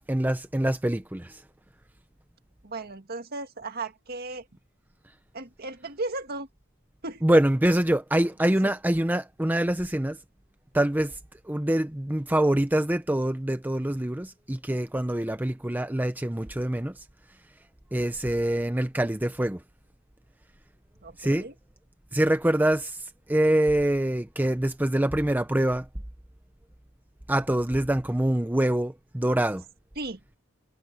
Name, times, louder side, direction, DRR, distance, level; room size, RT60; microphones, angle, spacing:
voice 1, 0.1-1.4 7.2-10.2 10.7-11.1 11.5-16.9 17.9-19.6 21.2-21.5 22.1-23.0 23.3-25.8 27.3-29.6, right 1 dB, 10° right, 0.6 m, -25 dB
voice 2, 2.6-4.5 5.3-6.5 7.0-7.2 8.6-8.7 21.0-21.6 30.0-30.2, right 2 dB, 50° right, 1.9 m, -36 dB
head